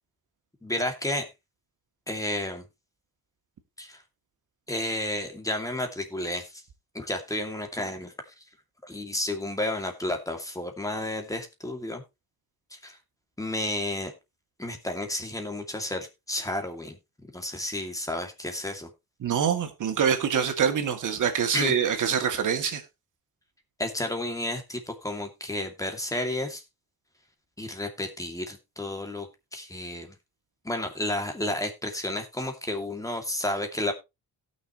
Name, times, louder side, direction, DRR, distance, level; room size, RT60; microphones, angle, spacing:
voice 1, 0.6-1.3 2.1-2.6 3.8-4.0 4.7-6.6 6.9-8.4 8.8-12.0 12.7-13.0 13.4-14.1 14.6-17.0 17.3-18.9 21.5-21.7 23.8-26.6 27.6-30.2 30.6-33.9, left 1 dB, 10° left, 2.5 m, -32 dB
voice 2, 19.2-22.8, right 7 dB, 55° right, 2.5 m, -25 dB
17.5 x 6.5 x 3.1 m
cardioid pair, 105°, 36 cm